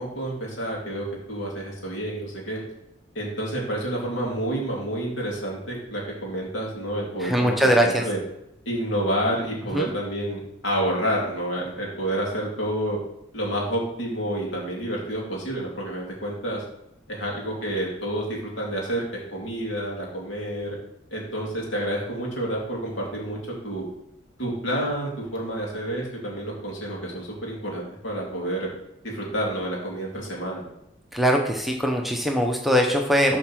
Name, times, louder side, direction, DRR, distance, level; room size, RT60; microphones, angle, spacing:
voice 1, 0.0-2.6 3.1-8.2 8.6-13.0 13.3-16.6 17.1-20.8 21.1-23.8 24.4-28.7 29.0-30.6, right 1 dB, 75° left, -2 dB, 2.9 m, -29 dB
voice 2, 7.2-8.0 9.7-9.9 31.1-33.4, equal, ahead, 1 dB, 0.7 m, -21 dB
7.8 x 4.4 x 6.1 m, 0.82 s
head